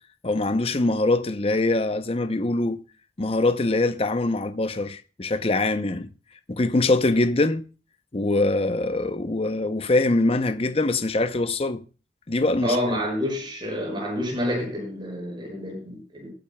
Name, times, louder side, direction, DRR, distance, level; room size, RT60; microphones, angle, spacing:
voice 1, 0.2-2.8 3.2-6.1 6.5-7.6 8.1-11.8 12.3-13.0, left 2 dB, 30° left, 0.7 m, -23 dB
voice 2, 12.6-16.3, equal, 25° right, 6.4 m, -28 dB
21.0 x 10.0 x 2.2 m
head